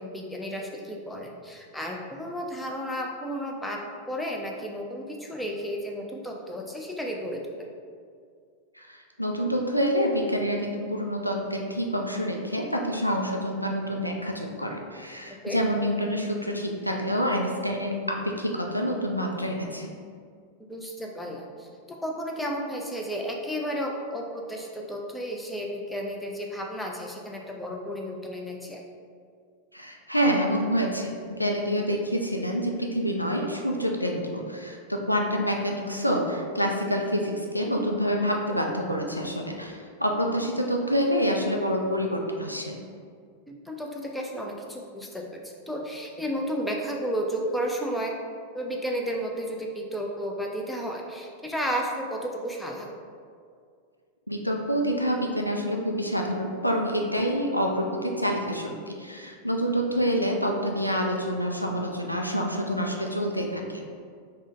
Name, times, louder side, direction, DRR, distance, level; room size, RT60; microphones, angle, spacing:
voice 1, 0.0-3.8 4.1-7.7 15.4-15.6 20.7-28.8 43.5-48.1 48.5-53.0, equal, 5° left, 0 dB, 0.5 m, -33 dB
voice 2, 8.7-19.9 29.7-42.8 54.3-63.8, equal, 90° left, 1 dB, 0.3 m, -27 dB
3.7 x 2.1 x 3.7 m, 2.1 s
figure-of-eight pair, 90°, 0 cm